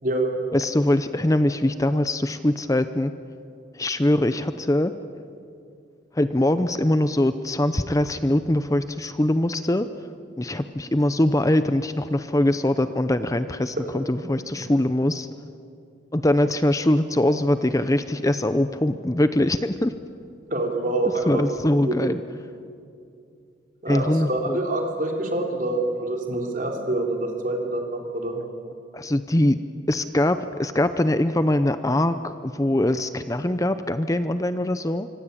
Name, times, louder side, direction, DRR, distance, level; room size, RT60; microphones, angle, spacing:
voice 1, 0.0-0.3 13.8-13.9 20.5-21.4 21.8-22.0 23.8-28.4, right 2 dB, 45° right, 1 dB, 4.2 m, -26 dB
voice 2, 0.5-3.1 3.7-4.9 6.1-9.9 10.4-15.3 16.1-19.9 21.3-22.2 23.9-24.6 28.9-29.6 29.9-35.1, left 1 dB, 20° left, 11 dB, 0.7 m, -22 dB
25.0 x 25.0 x 8.6 m, 2.5 s
head